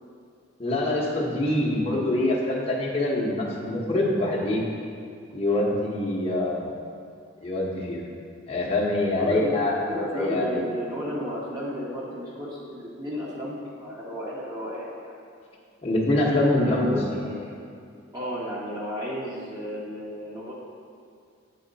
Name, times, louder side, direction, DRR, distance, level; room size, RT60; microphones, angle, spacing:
voice 1, 0.6-4.6 5.3-6.8 7.4-8.0 8.5-9.8 10.1-10.6 15.8-17.3, left 1 dB, 30° left, -4 dB, 0.9 m, -25 dB
voice 2, 9.2-9.5 9.9-15.2 16.6-17.5 18.1-20.5, equal, 20° right, -7 dB, 0.9 m, -33 dB
8.5 x 4.2 x 3.9 m, 2.3 s
head